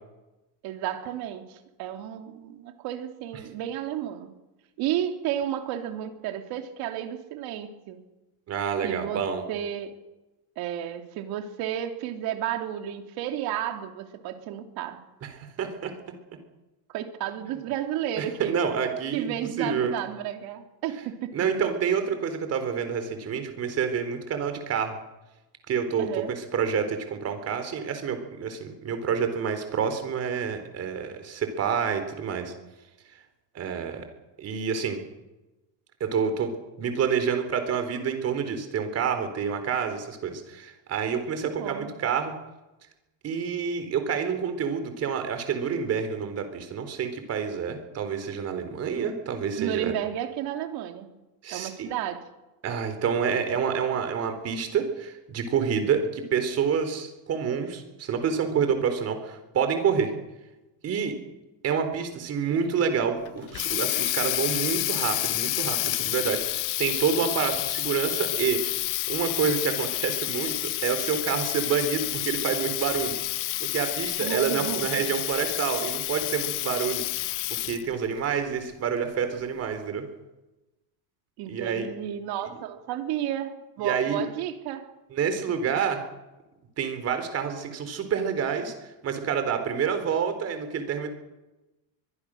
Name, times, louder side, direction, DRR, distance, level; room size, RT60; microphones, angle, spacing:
voice 1, 0.6-4.3 4.8-8.0 8.8-9.2 9.5-9.9 10.6-15.0 16.9-18.6 19.1-21.3 26.0-26.3 41.6-41.9 49.6-51.1 51.5-52.2 74.2-75.1 81.4-84.9, right 11 dB, 55° right, 6 dB, 2.9 m, -32 dB
voice 2, 8.5-9.4 15.2-15.9 18.2-19.9 21.3-24.9 25.7-32.5 33.5-34.0 34.4-35.0 36.0-36.5 36.8-42.3 43.2-49.9 51.4-51.9 52.6-60.1 60.8-61.1 61.6-73.2 73.6-77.2 77.5-80.1 81.5-81.9 82.5-82.6 83.8-84.2 85.1-86.0 86.8-88.7 89.0-91.1, right 7 dB, 35° right, 8 dB, 3.9 m, -28 dB
Water tap faucet, 63.2-77.9, left 18 dB, 45° left, 0.8 m, -29 dB
24.0 x 22.5 x 6.5 m, 1.0 s
cardioid pair, 160°, 45 cm